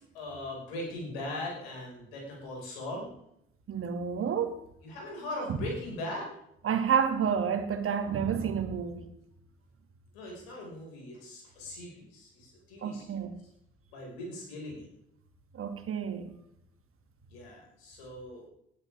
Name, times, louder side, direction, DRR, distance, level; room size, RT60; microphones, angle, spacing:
voice 1, 0.0-3.1 4.8-6.4 10.1-13.1 13.9-14.9 17.3-18.5, left 1 dB, 75° left, 5.5 m, -40 dB
voice 2, 3.7-4.6 6.6-9.0 12.8-13.4 15.5-16.3, right 7 dB, 45° right, 2.2 m, -29 dB
20.0 x 11.5 x 3.6 m
figure-of-eight pair, 50°, 30 cm